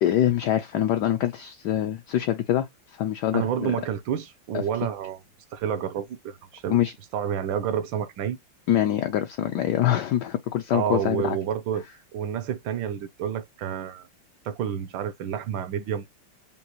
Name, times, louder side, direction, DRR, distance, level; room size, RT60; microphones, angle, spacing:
voice 1, 0.0-2.7 2.9-3.7 4.5-4.6 6.7-6.9 8.7-11.4, left 11 dB, 70° left, 1.1 m, -24 dB
voice 2, 3.3-5.2 5.5-6.8 7.1-8.4 10.7-11.8 12.1-14.1 14.4-16.1, right 9 dB, 75° right, 1.3 m, -29 dB
5.4 x 2.4 x 2.9 m
omnidirectional pair, 2.2 m